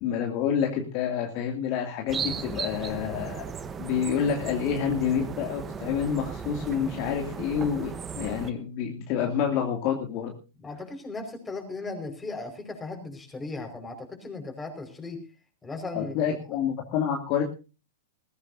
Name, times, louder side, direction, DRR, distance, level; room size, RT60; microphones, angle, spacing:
voice 1, 0.0-3.4 3.8-10.3 15.9-17.5, left 8 dB, 40° left, 2 dB, 2.5 m, -28 dB
sound 1, 2.1-8.5, right 6 dB, 20° right, 1.1 m, -36 dB
voice 2, 10.6-15.2 15.6-16.4, left 3 dB, 10° left, 4 dB, 5.1 m, -37 dB
21.0 x 16.0 x 2.7 m, 0.32 s
figure-of-eight pair, 100°, 0 cm